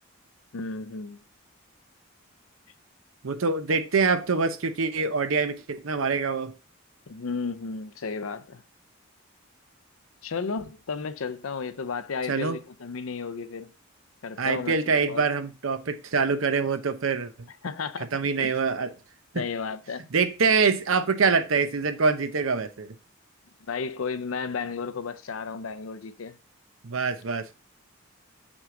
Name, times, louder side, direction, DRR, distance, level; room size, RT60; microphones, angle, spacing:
voice 1, 0.5-1.2 7.1-8.6 10.2-13.7 14.2-15.3 17.6-18.1 18.4-18.5 19.3-20.0 23.7-26.4, left 5 dB, 85° left, 0.6 m, -33 dB
voice 2, 3.2-6.5 12.3-12.6 14.4-17.3 18.1-18.9 19.3-19.4 20.1-22.9 26.8-27.5, right 4 dB, 80° right, 0.7 m, -25 dB
6.2 x 6.2 x 3.7 m
head